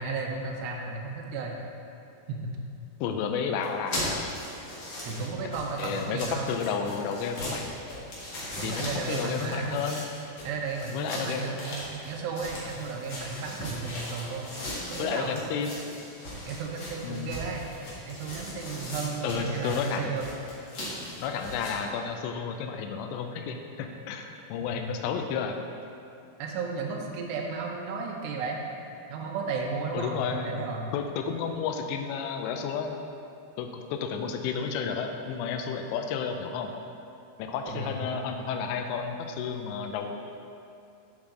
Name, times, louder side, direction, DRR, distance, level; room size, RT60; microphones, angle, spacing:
voice 1, 0.0-1.6 2.3-2.6 5.1-6.9 8.6-9.8 10.4-14.5 14.9-15.3 16.5-17.6 18.1-20.3 26.4-28.6 29.1-30.9 37.6-38.1, right 4 dB, 75° right, 1 dB, 2.8 m, -34 dB
voice 2, 3.0-4.3 5.8-7.7 8.6-10.0 10.9-11.4 15.0-15.8 17.0-17.4 19.2-20.1 21.2-25.6 29.9-30.5 30.9-33.0 33.6-36.7 37.4-40.4, left 6 dB, 85° left, 5 dB, 2.7 m, -32 dB
sound 1, 3.6-21.7, left 1 dB, 55° left, 1.4 m, -38 dB
9.0 x 7.1 x 3.8 m, 2.6 s
omnidirectional pair, 5.2 m